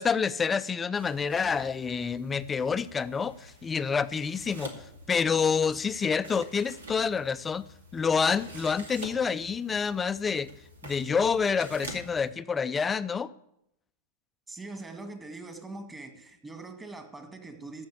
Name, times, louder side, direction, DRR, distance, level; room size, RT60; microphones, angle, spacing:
voice 1, 0.0-4.7 5.1-7.6 7.9-10.5 10.8-13.3, left 6 dB, 20° left, 0.6 m, -28 dB
sound 1, 1.0-12.3, right 1 dB, 85° right, 2.3 m, -47 dB
voice 2, 14.5-17.8, right 2 dB, 15° right, 2.0 m, -42 dB
14.0 x 5.3 x 8.2 m
hypercardioid pair, 105°, 0 cm